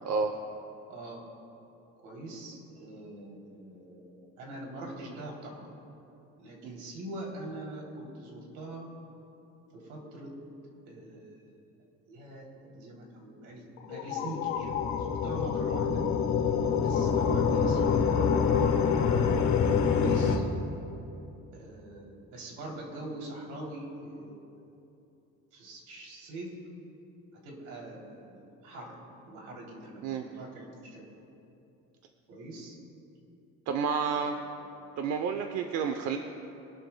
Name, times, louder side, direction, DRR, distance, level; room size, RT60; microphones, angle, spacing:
voice 1, 0.9-1.2 2.0-5.7 6.4-8.9 9.7-10.4 10.8-11.4 12.1-16.0 16.8-20.5 21.5-24.6 25.5-26.6 27.4-29.0 29.3-31.1 32.3-32.8 34.0-34.7, right 1 dB, 80° right, -1 dB, 3.3 m, -43 dB
sound 1, 13.8-20.4, left 6 dB, 70° left, 1.4 m, -26 dB
voice 2, 33.7-34.4 35.0-36.2, right 6 dB, 60° right, 5 dB, 0.8 m, -30 dB
24.5 x 12.5 x 2.3 m, 2.8 s
cardioid pair, 160°, 30 cm